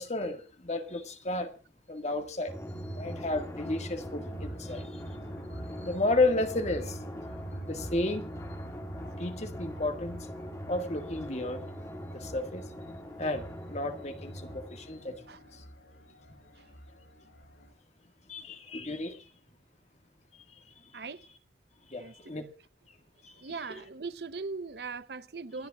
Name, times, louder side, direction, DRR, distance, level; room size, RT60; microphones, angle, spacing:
voice 1, 0.0-1.5 1.9-2.5 2.9-5.0 5.8-7.0 7.7-8.2 9.2-10.3 10.7-11.6 12.1-12.6 13.2-15.2 15.5-15.6 18.3-19.2 21.9-22.4 23.2-23.8, left 2 dB, 40° left, 1.8 m, -32 dB
sound 1, 2.2-17.7, equal, 80° left, 7.6 m, -49 dB
Drum, 2.5-15.6, equal, 15° left, 2.1 m, -41 dB
voice 2, 23.4-25.7, right 4 dB, 65° right, 0.7 m, -39 dB
28.0 x 10.5 x 2.4 m
head